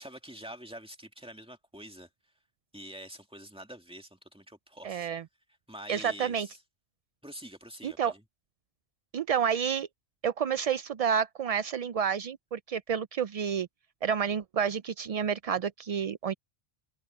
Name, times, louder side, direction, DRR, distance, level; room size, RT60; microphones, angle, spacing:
voice 1, 0.0-2.1 2.7-5.1 5.7-6.6 7.2-8.2, equal, 5° right, 2.2 m, -46 dB
voice 2, 4.8-5.2 5.9-6.5 7.8-8.1 9.1-9.9 10.2-13.7 14.0-16.3, right 7 dB, 65° right, 0.3 m, -29 dB
omnidirectional pair, 1.1 m